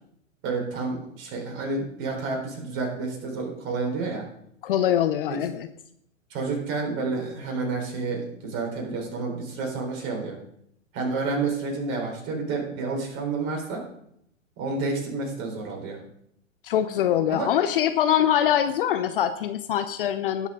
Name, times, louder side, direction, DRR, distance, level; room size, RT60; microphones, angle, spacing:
voice 1, 0.4-4.2 5.3-5.4 6.3-10.4 10.9-13.8 14.6-16.0 17.3-17.5, right 3 dB, 30° right, 0 dB, 4.4 m, -30 dB
voice 2, 4.6-5.7 16.6-20.5, left 10 dB, 45° left, 10 dB, 0.7 m, -23 dB
18.5 x 7.4 x 3.7 m, 0.71 s
figure-of-eight pair, 115°, 40 cm